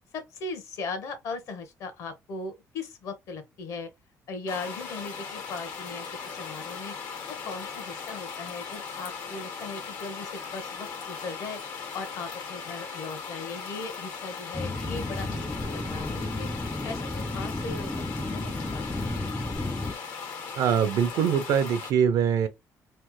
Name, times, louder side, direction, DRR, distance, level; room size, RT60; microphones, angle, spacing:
voice 1, 0.1-3.9 4.3-6.9 7.3-16.5 16.8-18.8, left 4 dB, 60° left, 1.0 m, -38 dB
sound 1, 4.5-21.9, left 6 dB, 85° left, 1.5 m, -38 dB
sound 2, 14.5-19.9, left 2 dB, 5° left, 0.3 m, -33 dB
voice 2, 20.6-22.5, right 8 dB, 70° right, 0.6 m, -23 dB
3.2 x 2.0 x 3.0 m
cardioid pair, 145°, 6 cm